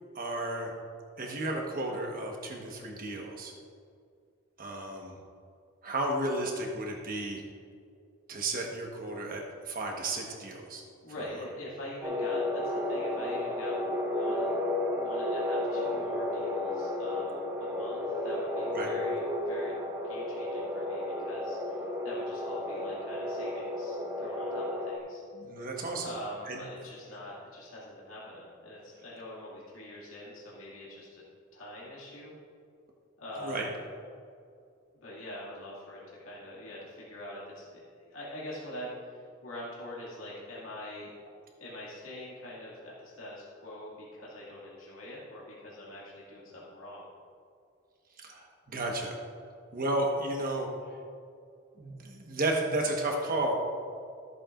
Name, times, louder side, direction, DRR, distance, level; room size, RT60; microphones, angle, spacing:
voice 1, 0.1-0.7 1.2-3.5 4.6-5.2 5.8-7.4 8.3-10.8 11.2-11.3 18.7-18.9 25.3-26.1 26.5-26.6 33.4-33.7 48.2-49.2 49.7-50.7 51.8-53.6, right 2 dB, 45° right, 0 dB, 1.3 m, -33 dB
voice 2, 11.0-14.5 14.9-19.7 20.0-25.2 26.0-31.2 31.5-32.3 33.2-33.8 35.0-41.1 41.6-47.1, left 1 dB, 85° left, -6 dB, 2.3 m, -44 dB
sound 1, 12.0-25.0, left 1 dB, 10° right, 0.6 m, -32 dB
14.5 x 8.2 x 2.5 m, 2.3 s
head